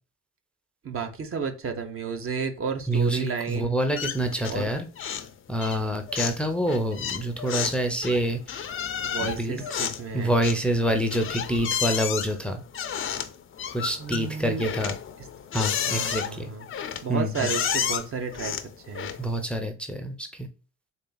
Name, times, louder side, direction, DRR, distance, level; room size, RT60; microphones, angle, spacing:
voice 1, 0.8-3.8 4.5-4.7 9.0-10.3 14.0-14.7 15.2-15.3 15.8-16.7 17.0-19.2, right 5 dB, 45° right, 0.9 m, -32 dB
voice 2, 2.9-4.9 5.5-8.7 9.2-9.6 10.1-12.6 13.7-14.9 15.5-16.5 17.1-17.5 19.2-20.3, right 1 dB, 5° left, 0.6 m, -27 dB
sound 1, 4.0-4.7 5.0-5.3 5.6-19.4, left 8 dB, 45° left, 0.5 m, -32 dB
4.2 x 3.2 x 2.2 m
cardioid pair, 90°, 30 cm